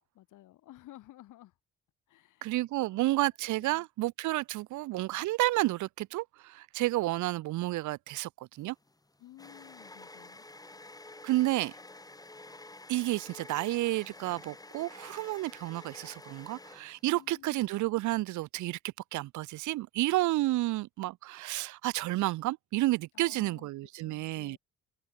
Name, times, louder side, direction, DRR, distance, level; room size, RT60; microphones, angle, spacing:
voice 1, 0.0-1.6 2.1-2.6 2.8-3.2 3.6-3.8 9.2-10.5 17.0-17.7 23.1-24.6, left 15 dB, 85° left, 4.5 m, -54 dB
voice 2, 2.4-8.7 11.2-11.7 12.9-18.8 19.1-24.6, right 17 dB, 75° right, 0.5 m, -31 dB
sound 1, 8.6-17.3, left 2 dB, 10° left, 1.8 m, -50 dB
cardioid pair, 90°, 30 cm